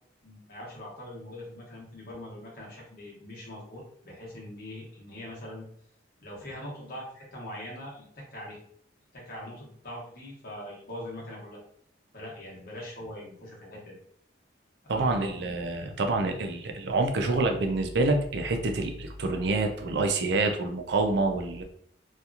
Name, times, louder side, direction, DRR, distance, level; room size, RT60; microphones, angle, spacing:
voice 1, 0.2-5.6 6.2-8.6 9.1-11.6 12.1-14.0 14.8-15.5, left 1 dB, 55° left, -4 dB, 1.1 m, -42 dB
voice 2, 14.9-21.6, right 3 dB, 65° right, 4 dB, 0.5 m, -27 dB
2.8 x 2.4 x 2.4 m, 0.64 s
head